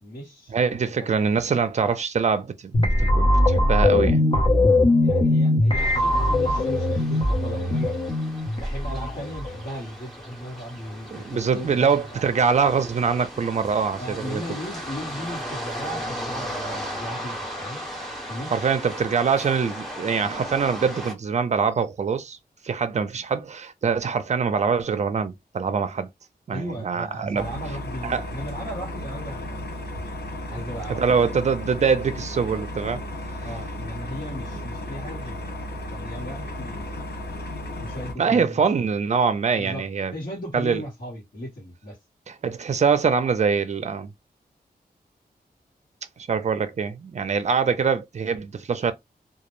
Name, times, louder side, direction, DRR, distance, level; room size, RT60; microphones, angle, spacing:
voice 1, 0.0-1.1 5.0-7.9 8.5-12.3 14.0-17.8 18.3-18.8 26.5-29.8 30.5-31.0 33.4-35.4 35.9-37.3 37.8-38.9 39.6-42.0, equal, 65° left, 1.1 m, -36 dB
voice 2, 0.5-4.2 11.1-14.4 18.5-22.4 22.6-26.1 26.5-27.5 28.0-28.2 30.9-33.0 38.2-40.1 40.5-40.8 42.3-44.1 46.2-48.9, right 6 dB, 45° right, 0.4 m, -24 dB
sound 1, 2.7-9.6, left 1 dB, 30° left, 0.7 m, -21 dB
sound 2, 5.8-21.1, equal, ahead, 0.9 m, -36 dB
sound 3, 27.4-38.1, left 1 dB, 85° left, 0.6 m, -34 dB
2.2 x 2.0 x 3.0 m
wide cardioid pair, 135°, 16 cm